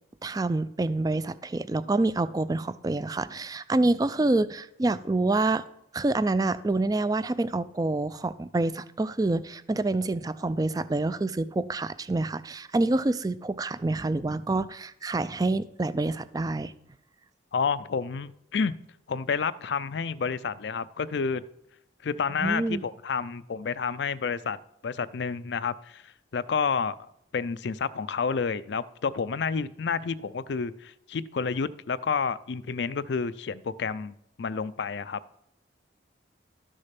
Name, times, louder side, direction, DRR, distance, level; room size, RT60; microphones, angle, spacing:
voice 1, 0.2-5.6 5.9-16.7 22.4-22.8, right 2 dB, 20° right, 0.3 m, -27 dB
voice 2, 17.5-18.7 19.1-21.4 22.0-24.6 24.8-27.0 27.3-35.2, left 5 dB, 70° left, 0.4 m, -30 dB
12.5 x 6.4 x 5.8 m
head